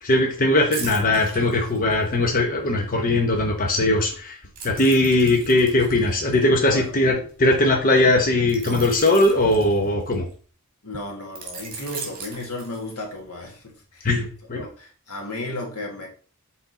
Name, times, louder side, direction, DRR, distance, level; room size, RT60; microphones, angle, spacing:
voice 1, 0.0-4.4 4.6-10.3 14.0-14.7, left 2 dB, 40° left, 2 dB, 0.9 m, -20 dB
sound 1, 0.7-2.3 4.6-7.3 8.5-10.3 11.4-13.2 13.6-13.8, right 4 dB, 40° right, 2.2 m, -38 dB
voice 2, 6.7-7.0 10.8-14.2 14.5-16.1, left 1 dB, 85° left, 0 dB, 1.9 m, -34 dB
6.1 x 4.2 x 4.1 m, 0.41 s
head